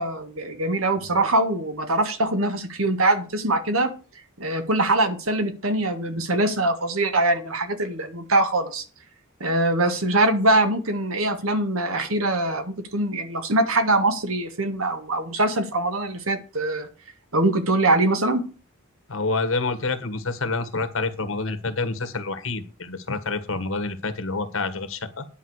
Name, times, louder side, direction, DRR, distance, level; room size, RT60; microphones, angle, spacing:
voice 1, 0.0-3.9 4.4-8.8 9.4-16.9 17.3-18.4, right 2 dB, 80° right, 8 dB, 1.8 m, -23 dB
voice 2, 19.1-25.3, left 3 dB, 70° left, 10 dB, 1.5 m, -28 dB
10.0 x 5.3 x 8.1 m, 0.35 s
head